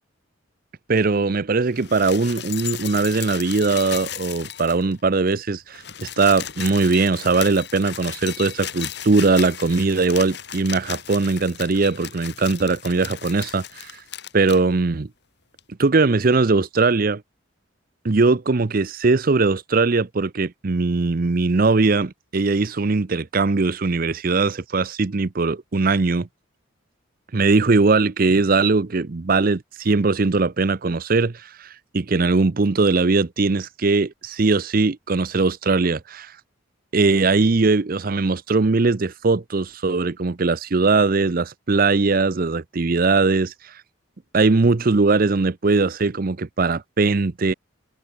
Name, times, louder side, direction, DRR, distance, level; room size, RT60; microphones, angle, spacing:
voice 1, 0.9-14.0 14.3-15.1 15.8-17.2 18.0-26.3 27.3-36.4 36.9-43.8 44.3-47.5, right 3 dB, 45° right, 0.6 m, -20 dB
sound 1, 1.7-5.0 5.3-5.4 5.6-14.6 15.6-15.7, left 10 dB, 55° left, 3.2 m, -35 dB
head